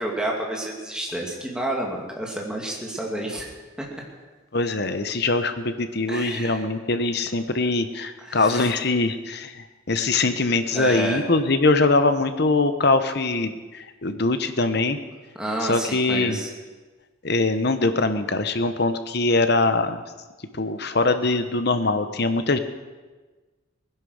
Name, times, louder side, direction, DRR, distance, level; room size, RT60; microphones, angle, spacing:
voice 1, 0.0-3.5 3.8-3.9 6.1-6.6 8.2-8.7 10.7-11.2 15.4-16.5, right 1 dB, 5° right, -2 dB, 2.5 m, -29 dB
voice 2, 4.5-15.0 15.6-16.4 17.2-20.0 20.5-22.6, left 3 dB, 55° left, 9 dB, 1.0 m, -22 dB
19.5 x 10.5 x 6.4 m, 1.3 s
head